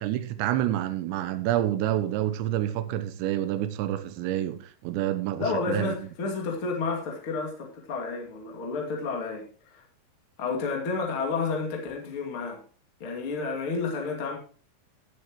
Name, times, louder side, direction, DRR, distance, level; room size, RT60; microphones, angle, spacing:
voice 1, 0.0-6.0, right 12 dB, 75° right, 3.2 m, -28 dB
voice 2, 5.4-9.5 9.7-9.8 10.4-12.6 13.0-14.4, left 4 dB, 40° left, 2.2 m, -30 dB
18.0 x 7.7 x 3.1 m
omnidirectional pair, 5.4 m